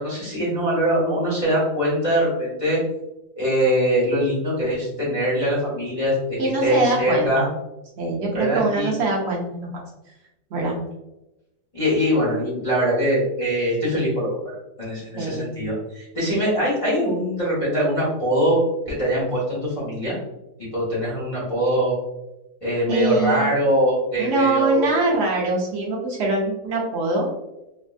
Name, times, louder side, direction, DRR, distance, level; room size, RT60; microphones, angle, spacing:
voice 1, 0.0-2.8 3.4-7.5 8.3-8.9 11.7-18.6 18.9-20.1 20.6-21.9 22.6-24.9, equal, 25° left, -8 dB, 0.7 m, -22 dB
voice 2, 6.4-7.5 8.0-9.8 10.5-10.8 15.1-15.5 22.9-23.5 24.2-27.3, right 2 dB, 65° right, -2 dB, 0.6 m, -23 dB
3.4 x 2.4 x 2.4 m, 0.95 s
omnidirectional pair, 2.0 m